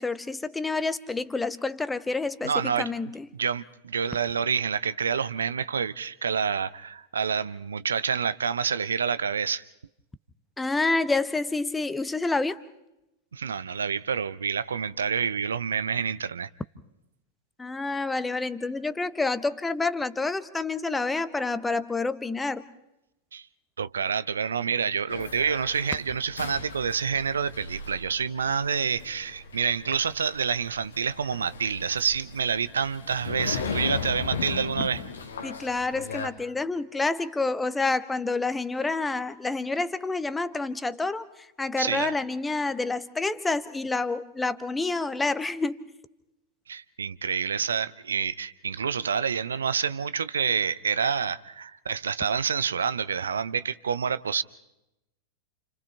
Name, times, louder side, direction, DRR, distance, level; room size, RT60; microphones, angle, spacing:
voice 1, 0.0-2.5 2.8-3.3 10.6-12.6 17.6-22.6 35.4-41.2 41.6-45.8, left 3 dB, 10° left, 1.0 m, -28 dB
voice 2, 2.4-2.9 3.3-9.6 13.3-16.5 23.3-23.5 23.8-35.0 41.8-42.1 46.7-54.4, right 6 dB, 70° right, 0.6 m, -28 dB
sound 1, 25.1-36.3, left 5 dB, 70° left, 1.8 m, -37 dB
30.0 x 28.0 x 3.4 m
figure-of-eight pair, 90°, 0 cm